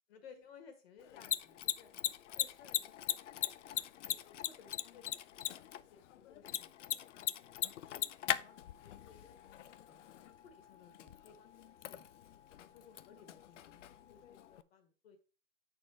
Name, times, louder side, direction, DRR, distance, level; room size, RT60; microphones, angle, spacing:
voice 1, 0.1-1.9 2.4-3.3 3.9-5.0 5.5-12.1 12.6-15.2, left 6 dB, 50° left, 6 dB, 1.7 m, -60 dB
Mechanisms, 1.0-14.6, left 12 dB, 65° left, 0.5 m, -41 dB
8.3 x 4.4 x 4.4 m, 0.35 s
hypercardioid pair, 160°, 38 cm